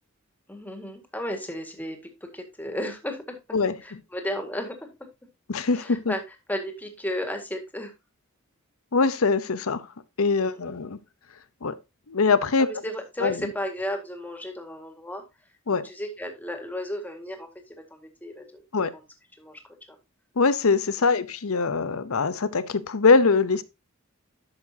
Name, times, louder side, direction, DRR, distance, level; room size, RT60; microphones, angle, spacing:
voice 1, 0.5-4.9 5.7-7.9 10.4-10.8 12.6-15.2 15.7-18.6 18.9-19.0 19.4-19.6, equal, 10° left, 1.8 m, -34 dB
voice 2, 5.5-6.1 8.9-9.9 10.2-11.0 11.6-11.7 12.1-12.7 13.2-13.4 15.7-15.9 18.7-18.9 20.4-23.6, left 4 dB, 80° left, 0.8 m, -22 dB
11.0 x 6.6 x 2.8 m
head